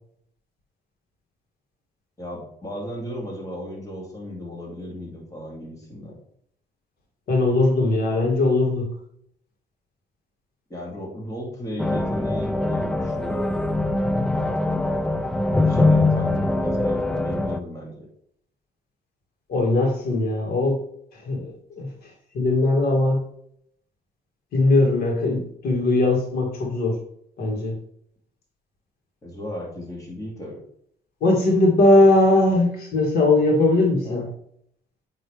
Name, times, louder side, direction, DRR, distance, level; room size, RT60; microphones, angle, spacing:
voice 1, 2.2-6.2 10.7-13.5 15.6-18.1 29.2-30.6 34.0-34.3, left 1 dB, 20° left, -3 dB, 2.9 m, -35 dB
voice 2, 7.3-8.9 19.5-20.8 21.2-21.9 22.3-23.2 24.5-27.0 27.4-27.7 31.2-34.2, left 2 dB, 65° left, 0 dB, 2.6 m, -19 dB
sound 1, 11.8-17.6, left 2 dB, 5° left, 0.3 m, -22 dB
8.8 x 3.9 x 3.4 m, 0.68 s
cardioid pair, 110°, 17 cm